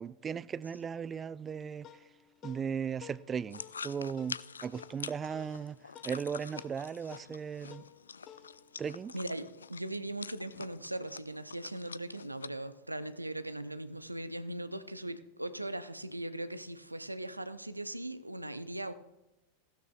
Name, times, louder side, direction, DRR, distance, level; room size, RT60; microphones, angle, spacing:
voice 1, 0.0-1.9 2.4-5.8 6.0-7.8 8.8-9.1, right 7 dB, 20° right, 0.3 m, -37 dB
sound 1, 1.4-10.2, left 9 dB, 35° left, 0.9 m, -56 dB
sound 2, 3.5-12.5, left 5 dB, 75° left, 0.3 m, -46 dB
voice 2, 9.1-18.9, right 1 dB, 85° right, 0.6 m, -39 dB
16.0 x 12.5 x 2.4 m
figure-of-eight pair, 90°, 0 cm